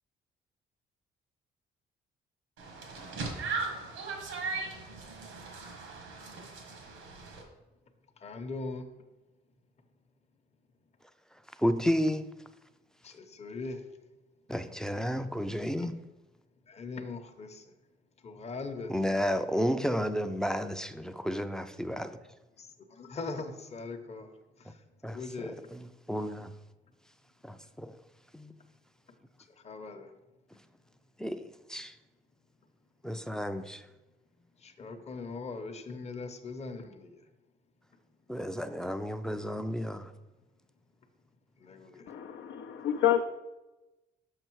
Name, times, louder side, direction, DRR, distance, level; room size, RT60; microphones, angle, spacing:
sound 1, 2.6-7.4, right 4 dB, 90° right, 1.5 m, -38 dB
voice 1, 8.2-8.9 13.0-13.8 16.7-17.7 18.2-18.9 22.6-24.3 24.6-25.6 29.5-30.1 34.6-37.2 41.6-42.1, left 3 dB, 35° left, 0.8 m, -41 dB
voice 2, 11.6-12.2 14.5-16.0 18.9-22.2 25.0-26.5 27.4-28.0 28.3-28.5 31.2-32.0 33.0-33.9 38.3-40.1, equal, 5° left, 0.4 m, -32 dB
voice 3, 42.1-43.2, left 10 dB, 65° left, 0.5 m, -28 dB
6.6 x 5.5 x 4.6 m
cardioid pair, 90°, 20 cm